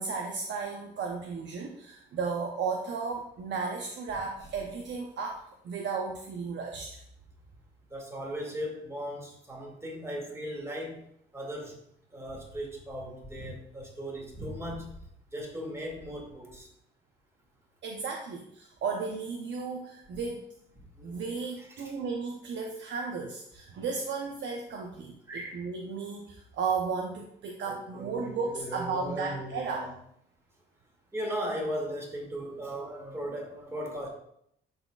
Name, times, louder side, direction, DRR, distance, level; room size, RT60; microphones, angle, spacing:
voice 1, 0.0-7.0 17.8-20.5 21.0-29.9, right 5 dB, 65° right, 1 dB, 0.8 m, -34 dB
voice 2, 7.9-11.0 11.3-11.8 12.1-14.9 15.3-16.7 20.8-21.2 21.7-21.9 25.3-25.7 27.6-29.9 31.1-34.1, equal, 15° right, -1 dB, 2.2 m, -37 dB
11.5 x 4.1 x 2.4 m, 0.71 s
cardioid pair, 90°, 20 cm